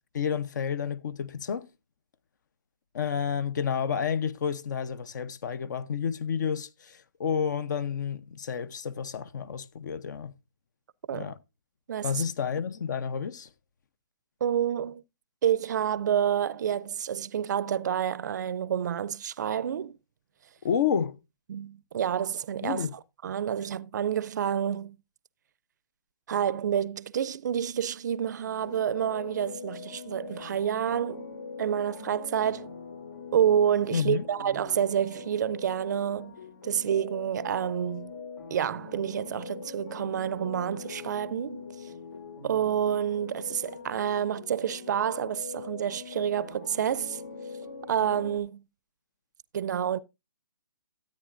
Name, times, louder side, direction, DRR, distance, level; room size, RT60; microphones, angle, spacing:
voice 1, 0.1-1.7 2.9-10.3 11.1-11.4 12.0-13.5 20.6-21.2 22.6-22.9 33.9-34.2, left 7 dB, 60° left, 0.8 m, -30 dB
voice 2, 11.9-12.2 14.4-15.0 15.4-20.0 21.5-22.9 23.2-25.0 26.3-31.3 31.6-32.7 33.3-36.4 36.6-38.1 38.5-41.7 42.4-47.2 47.9-48.6 49.5-50.0, right 9 dB, 55° right, 0.5 m, -28 dB
sound 1, 28.4-48.4, left 5 dB, 75° left, 2.3 m, -43 dB
13.0 x 8.8 x 2.5 m
hypercardioid pair, 145°, 11 cm